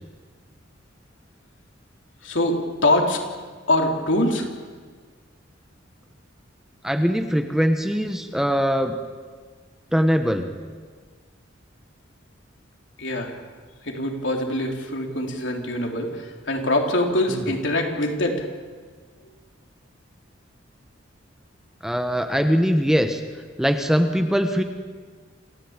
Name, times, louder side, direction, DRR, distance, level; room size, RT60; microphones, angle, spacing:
voice 1, 2.2-3.2 3.7-4.5 13.0-13.4 13.8-18.5, left 1 dB, 70° left, 2 dB, 3.6 m, -23 dB
voice 2, 6.8-9.0 9.9-10.5 17.3-17.5 21.8-23.2 23.6-24.6, equal, ahead, 6 dB, 1.1 m, -21 dB
27.5 x 16.0 x 8.9 m, 1.5 s
head